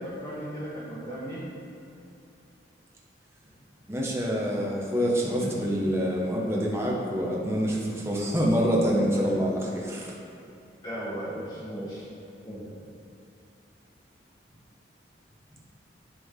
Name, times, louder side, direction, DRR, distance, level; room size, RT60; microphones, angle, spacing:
voice 1, 0.0-1.5 5.4-5.8 9.2-9.3 10.8-12.1 12.4-12.7, equal, 20° left, -11 dB, 1.3 m, -36 dB
voice 2, 3.9-10.1, equal, 15° right, -4 dB, 1.0 m, -26 dB
11.0 x 3.8 x 3.7 m, 2.7 s
head